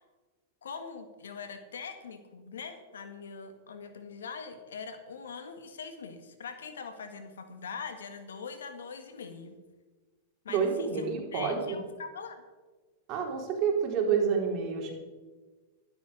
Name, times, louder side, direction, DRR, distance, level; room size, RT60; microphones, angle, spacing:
voice 1, 0.6-9.5 10.4-12.4, left 5 dB, 85° left, 8 dB, 1.8 m, -42 dB
voice 2, 10.5-11.8 13.1-14.9, right 6 dB, 45° right, 1 dB, 3.9 m, -28 dB
12.5 x 12.0 x 5.1 m, 1.3 s
hypercardioid pair, 110°, 0 cm